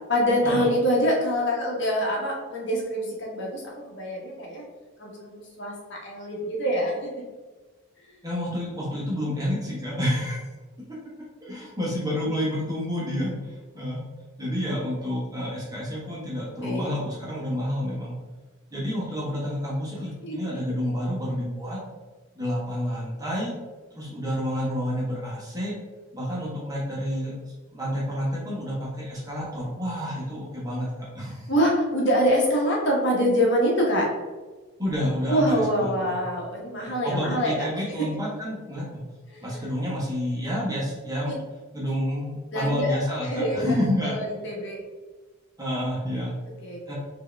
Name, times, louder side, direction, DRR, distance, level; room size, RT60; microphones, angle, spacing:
voice 1, 0.1-4.6 5.0-6.9 16.6-17.0 19.9-20.3 31.5-34.1 35.3-37.5 39.3-39.7 42.5-43.8 44.1-44.8 46.5-46.9, equal, 55° left, -2 dB, 1.1 m, -25 dB
voice 2, 8.2-10.4 11.4-14.0 14.4-18.1 18.7-21.8 22.3-23.5 23.9-25.7 26.1-31.5 34.8-36.2 36.8-39.0 39.4-41.3 41.7-44.2 45.6-46.3 46.9-47.0, equal, 15° right, -6 dB, 1.2 m, -29 dB
4.4 x 2.9 x 3.4 m, 1.3 s
head